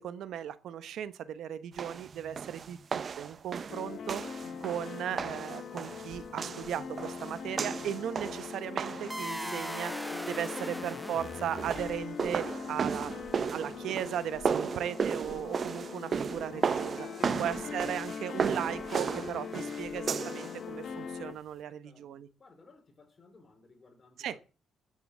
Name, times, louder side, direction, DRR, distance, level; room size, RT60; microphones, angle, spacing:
voice 1, 0.0-4.2 4.6-17.1 17.4-22.3 24.2-24.4, right 10 dB, 75° right, 1.0 m, -37 dB
sound 1, 1.8-9.2 11.4-20.6, right 6 dB, 45° right, 0.6 m, -35 dB
sound 2, 3.7-21.3, left 6 dB, 60° left, 1.5 m, -41 dB
sound 3, 9.1-12.2, right 1 dB, 10° right, 1.0 m, -39 dB
voice 2, 17.1-18.6 21.8-24.5, left 3 dB, 35° left, 4.4 m, -59 dB
14.0 x 7.7 x 7.6 m
cardioid pair, 90°, 0 cm